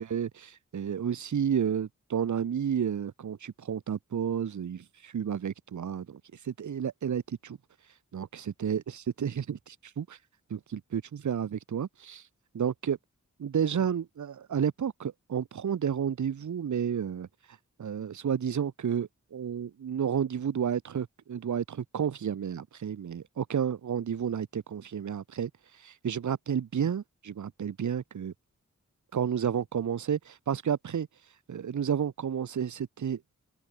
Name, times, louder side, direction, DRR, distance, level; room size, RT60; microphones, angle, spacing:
voice 1, 0.0-7.6 8.1-8.8 9.2-10.2 10.5-12.3 12.5-13.0 13.4-17.3 17.8-28.3 29.1-31.1 31.5-33.2, right 8 dB, 70° right, 0.7 m, -31 dB
open air
wide cardioid pair, 75°, 30 cm